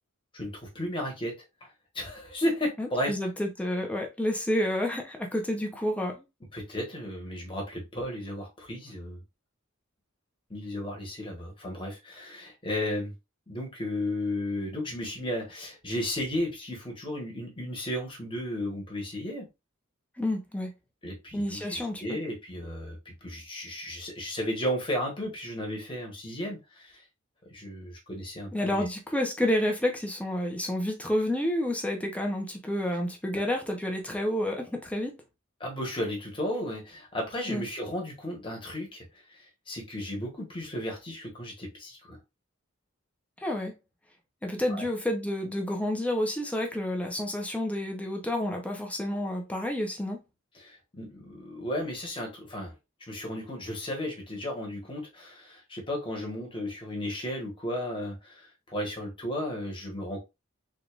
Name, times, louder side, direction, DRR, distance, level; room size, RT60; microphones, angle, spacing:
voice 1, 0.3-1.7 1.9-3.1 6.5-9.2 10.5-13.1 13.5-19.5 21.0-27.0 27.5-28.9 33.3-33.4 35.6-39.0 39.3-42.2 44.7-44.9 50.6-52.7 53.1-60.2, left 1 dB, 25° left, 1.4 m, -34 dB
voice 2, 2.8-6.2 20.2-20.7 21.3-22.2 28.5-35.2 37.5-37.6 43.4-43.7 44.4-50.2, left 1 dB, 5° left, 0.8 m, -29 dB
3.8 x 3.5 x 2.5 m
head